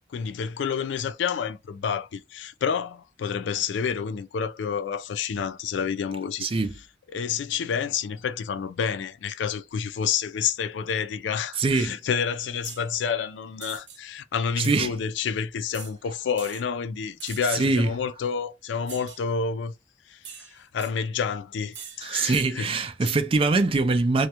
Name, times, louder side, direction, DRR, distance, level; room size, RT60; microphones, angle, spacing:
voice 1, 0.1-6.5 7.1-19.7 20.1-22.7 23.0-23.1, left 6 dB, 75° left, 0.3 m, -29 dB
voice 2, 6.4-6.7 11.6-12.0 14.6-14.9 17.5-17.9 22.0-24.3, right 3 dB, 30° right, 0.3 m, -23 dB
sound 1, 12.6-12.9 13.6-14.0 14.6-14.9 15.7-15.9 16.4-16.6 17.2-17.6 18.9-19.2 20.2-20.9 21.7-22.0 22.3-22.5, right 7 dB, 70° right, 0.7 m, -42 dB
2.3 x 2.1 x 2.8 m
head